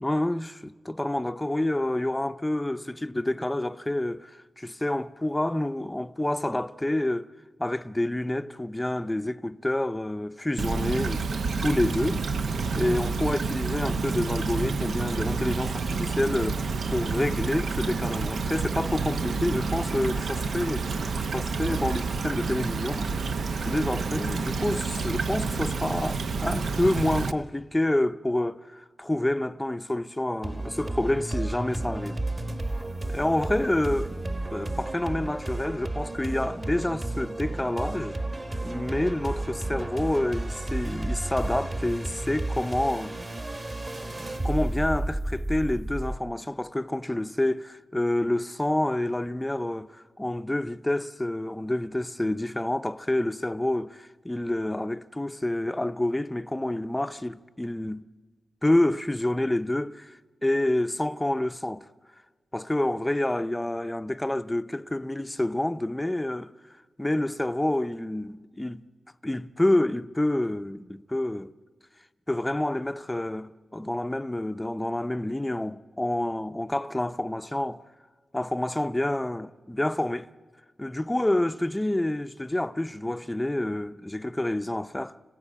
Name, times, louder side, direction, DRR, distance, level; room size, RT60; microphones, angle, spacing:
voice 1, 0.0-7.3 7.6-11.2 11.6-12.3 12.7-20.9 21.3-23.1 23.6-32.2 33.1-38.2 38.6-43.1 44.2-58.0 58.6-61.9 62.5-66.5 67.0-68.8 69.2-71.5 72.3-77.8 78.3-80.3 80.8-85.2, left 1 dB, 15° left, 0.6 m, -28 dB
Stream / Trickle dribble, 10.6-27.3, right 4 dB, 80° right, 0.8 m, -29 dB
sound 1, 30.4-46.2, right 2 dB, 35° right, 1.7 m, -32 dB
26.0 x 16.0 x 8.6 m
wide cardioid pair, 85°, 0 cm